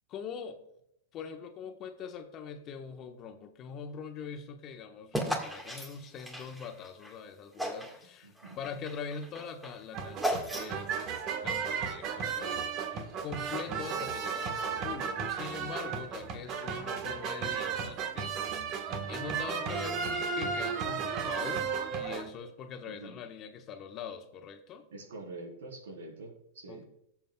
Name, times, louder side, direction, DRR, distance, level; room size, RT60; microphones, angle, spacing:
voice 1, 0.1-0.6 1.1-18.3 19.1-24.9 26.7-26.8, left 6 dB, 40° left, 5 dB, 1.2 m, -43 dB
sound 1, 5.1-7.1 7.6-8.0 8.4-11.0, equal, 5° right, 1.7 m, -35 dB
voice 2, 8.2-8.6 22.9-23.2 24.9-26.9, right 2 dB, 80° right, -2 dB, 3.9 m, -45 dB
sound 2, 9.9-22.3, right 6 dB, 45° right, 1.4 m, -34 dB
17.5 x 7.3 x 2.3 m, 0.78 s
hypercardioid pair, 115°, 0 cm